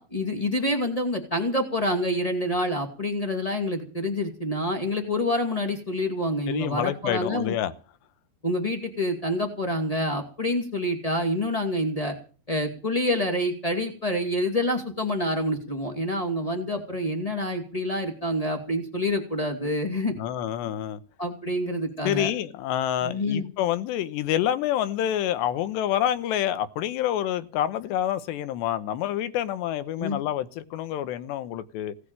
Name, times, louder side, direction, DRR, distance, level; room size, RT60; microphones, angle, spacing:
voice 1, 0.0-7.5 8.4-12.1 12.5-20.1 21.2-22.3 23.0-23.5 30.0-30.2, left 1 dB, 40° left, 0.5 m, -27 dB
voice 2, 6.5-7.7 20.2-21.0 22.0-31.9, left 11 dB, 80° left, 3.1 m, -27 dB
17.5 x 8.4 x 9.0 m
omnidirectional pair, 5.1 m